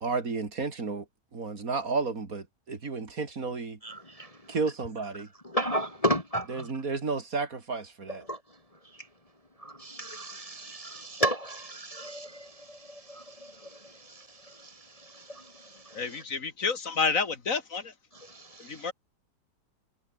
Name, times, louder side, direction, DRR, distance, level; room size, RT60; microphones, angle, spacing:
voice 1, 0.0-1.0 1.3-3.8 4.5-5.3 6.5-8.2, right 4 dB, 55° right, 3.1 m, -32 dB
voice 2, 5.5-6.7 8.3-8.4 9.8-12.3, equal, 20° left, 2.4 m, -30 dB
voice 3, 15.9-17.9 18.6-18.9, left 5 dB, 50° left, 2.5 m, -29 dB
omnidirectional pair, 1.8 m